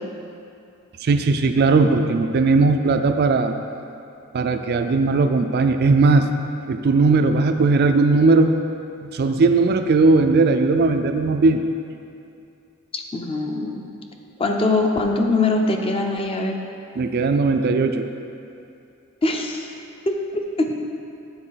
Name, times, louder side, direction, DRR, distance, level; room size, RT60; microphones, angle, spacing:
voice 1, 1.0-3.5 4.3-6.3 6.7-8.5 9.0-11.6 17.0-18.1, right 3 dB, 50° right, 7 dB, 0.3 m, -18 dB
voice 2, 12.9-13.8 14.4-16.6 19.2-19.7 20.1-20.7, left 2 dB, 25° left, 2 dB, 0.6 m, -22 dB
8.8 x 4.3 x 5.6 m, 2.6 s
head